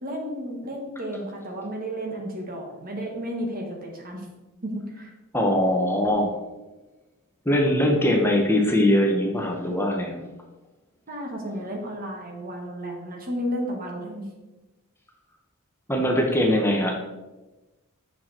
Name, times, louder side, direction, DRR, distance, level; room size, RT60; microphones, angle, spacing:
voice 1, 0.0-4.3 4.6-5.1 11.1-14.3, equal, 40° right, 1 dB, 1.6 m, -32 dB
voice 2, 5.3-6.3 7.5-10.2 15.9-16.9, left 1 dB, 10° left, 0 dB, 0.9 m, -21 dB
7.4 x 6.1 x 4.3 m, 1.1 s
head